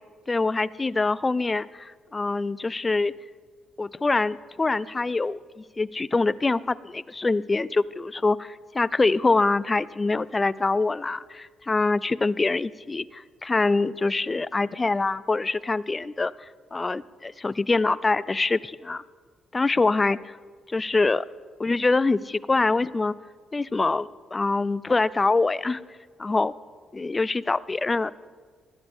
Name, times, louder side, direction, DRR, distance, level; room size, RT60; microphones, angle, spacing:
voice 1, 0.3-3.1 3.8-19.0 19.5-20.3 20.7-21.2 21.6-23.2 23.5-25.8 26.2-26.5 26.9-28.1, left 3 dB, 25° left, 19 dB, 0.4 m, -25 dB
20.5 x 12.5 x 3.6 m, 1.5 s
cardioid pair, 75°, 0 cm